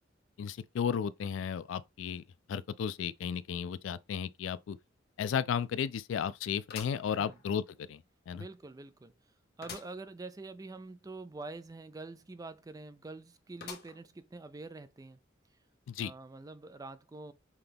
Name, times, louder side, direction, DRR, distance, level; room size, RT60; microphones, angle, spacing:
voice 1, 0.4-2.2 2.5-4.8 5.2-8.4 15.9-16.1, left 7 dB, 75° left, 0.3 m, -34 dB
sound 1, 5.0-5.1 6.7-7.8 8.3-8.4 9.6-10.0 10.4-10.5 10.7-10.8 13.6-14.2 14.8-14.9 15.9-16.0, left 6 dB, 55° left, 1.0 m, -47 dB
voice 2, 8.3-9.1 9.6-15.2 16.0-17.3, right 3 dB, 20° right, 0.4 m, -46 dB
5.7 x 2.3 x 3.4 m
head